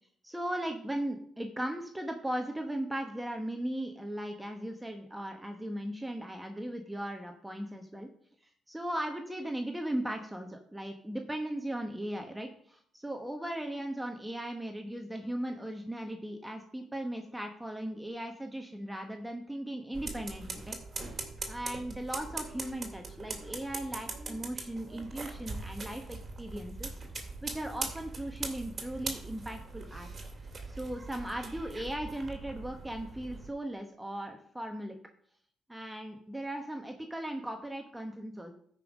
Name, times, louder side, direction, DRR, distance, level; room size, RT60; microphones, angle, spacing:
voice 1, 0.2-8.1 8.4-20.8 21.5-26.9 27.4-30.1 30.7-35.0 35.7-38.5, right 1 dB, 5° right, 4 dB, 1.1 m, -37 dB
sound 1, 19.9-33.5, right 3 dB, 35° right, 2.2 m, -41 dB
13.0 x 5.4 x 5.0 m, 0.64 s
cardioid pair, 90°, 0 cm